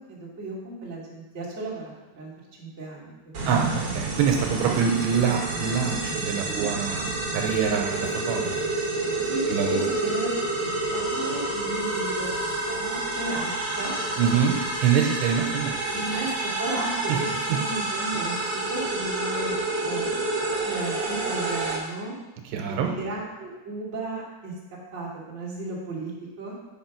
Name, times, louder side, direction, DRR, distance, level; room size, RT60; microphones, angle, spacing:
voice 1, 0.1-2.3 2.6-3.5 4.7-4.8 6.5-6.7 9.2-9.4 9.7-10.3 10.9-12.3 12.7-14.2 15.9-18.3 18.7-19.5 19.8-20.0 20.6-22.1 22.7-24.5 24.9-26.1 26.4-26.5, right 2 dB, 25° right, -6 dB, 1.7 m, -34 dB
sound 1, 3.3-21.8, right 2 dB, 60° right, 1.4 m, -29 dB
voice 2, 3.5-8.6 9.5-9.9 14.2-14.6 14.8-15.8 17.1-17.2 22.5-22.9, right 7 dB, 80° right, 2 dB, 3.0 m, -25 dB
8.7 x 5.0 x 5.9 m, 1.1 s
omnidirectional pair, 4.9 m